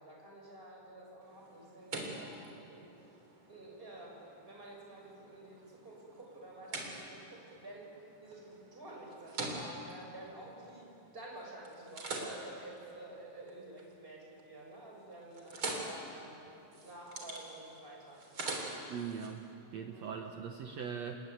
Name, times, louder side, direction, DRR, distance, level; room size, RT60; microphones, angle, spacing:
voice 1, 0.0-2.9 3.5-16.4 16.8-18.6 19.9-20.3, right 1 dB, 15° right, -2 dB, 6.0 m, -50 dB
sound 1, 1.2-11.2 11.6-13.9 14.3-14.7 15.0-19.3, right 2 dB, 30° right, 3.9 m, -45 dB
voice 2, 18.9-19.4 19.7-21.2, right 7 dB, 85° right, 4 dB, 1.5 m, -40 dB
28.5 x 20.5 x 9.3 m, 2.8 s
omnidirectional pair, 4.6 m